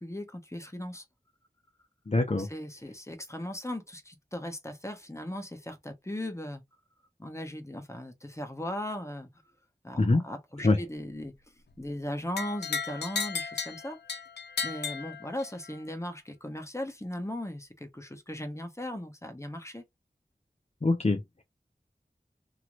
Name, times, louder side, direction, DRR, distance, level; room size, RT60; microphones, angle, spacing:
voice 1, 0.0-1.0 2.4-6.6 7.2-9.3 9.8-11.3 11.8-14.0 14.6-19.8, left 1 dB, 15° left, 1.1 m, -38 dB
voice 2, 2.1-2.5 10.0-10.2 10.6-10.8 20.8-21.4, left 2 dB, 40° left, 0.6 m, -25 dB
sound 1, 12.4-15.7, left 5 dB, 85° left, 0.4 m, -35 dB
3.0 x 2.9 x 2.5 m
wide cardioid pair, 40°, 17 cm